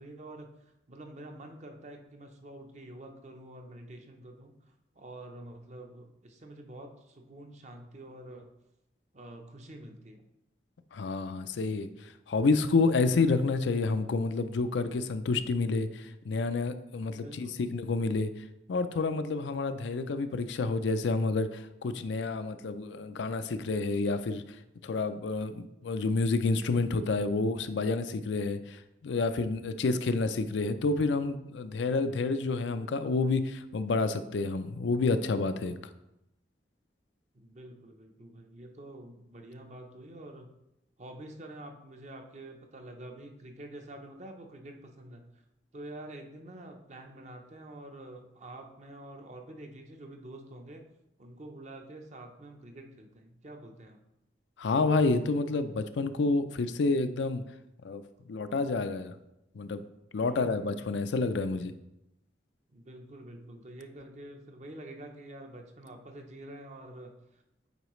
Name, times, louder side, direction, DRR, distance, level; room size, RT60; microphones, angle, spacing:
voice 1, 0.0-4.5 5.0-8.5 9.1-10.2 17.2-17.5 37.3-40.5 41.0-45.4 45.7-50.8 51.2-54.0 60.2-60.9 62.7-67.4, right 1 dB, 40° right, 4 dB, 0.7 m, -47 dB
voice 2, 10.9-18.3 18.7-24.4 24.8-35.7 54.6-57.4 57.8-58.0 58.3-59.2 59.6-59.8 60.1-61.7, left 3 dB, 75° left, 10 dB, 0.4 m, -29 dB
8.1 x 4.7 x 3.1 m, 0.88 s
head